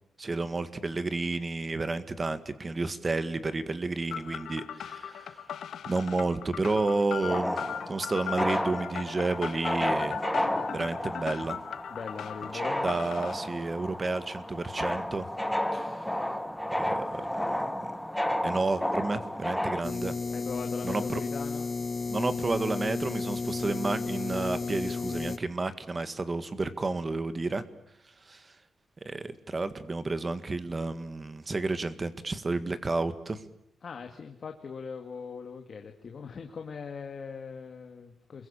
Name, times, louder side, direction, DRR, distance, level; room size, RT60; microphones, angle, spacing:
voice 1, 0.2-5.5 5.9-10.2 10.7-11.6 12.8-15.3 15.7-16.1 16.8-17.9 18.4-20.2 20.8-21.2 22.1-27.6 28.3-28.5 29.0-33.4, right 3 dB, 25° right, 12 dB, 1.8 m, -31 dB
sound 1, 4.1-13.3, left 9 dB, 90° left, 1.4 m, -39 dB
sound 2, 7.2-19.8, left 1 dB, 5° left, 1.2 m, -32 dB
voice 2, 11.9-12.9 20.3-21.7 33.8-38.5, left 5 dB, 45° left, 4 dB, 2.1 m, -40 dB
sound 3, 19.8-25.4, left 4 dB, 30° left, 1.0 m, -33 dB
29.0 x 22.5 x 8.9 m, 0.73 s
wide cardioid pair, 160°, 0 cm